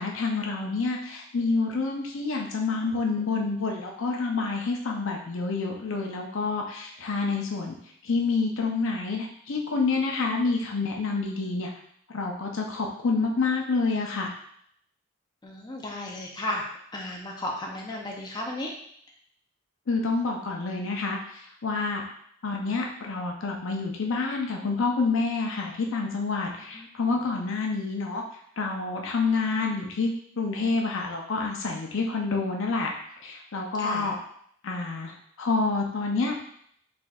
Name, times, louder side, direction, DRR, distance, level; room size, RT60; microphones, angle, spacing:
voice 1, 0.0-7.8 8.0-11.7 12.1-14.3 19.9-21.2 21.6-22.0 22.4-28.2 28.6-32.9 33.2-34.2 34.6-35.1 35.4-36.4, left 4 dB, 65° left, 1 dB, 0.6 m, -28 dB
voice 2, 15.4-16.6 16.9-18.7 26.7-26.9 27.2-27.3 33.8-34.1, left 1 dB, 20° left, -2 dB, 0.6 m, -34 dB
4.3 x 3.3 x 2.4 m, 0.67 s
head